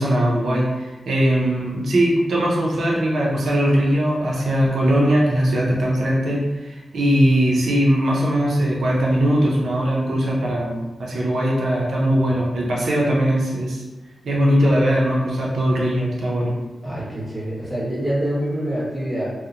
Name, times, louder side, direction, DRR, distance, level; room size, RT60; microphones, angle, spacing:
voice 1, 0.0-13.8 14.2-16.6, equal, 85° right, -4 dB, 0.5 m, -20 dB
voice 2, 16.8-19.3, right 1 dB, 5° left, -9 dB, 1.3 m, -25 dB
2.8 x 2.0 x 2.4 m, 1.1 s
wide cardioid pair, 85°, 0 cm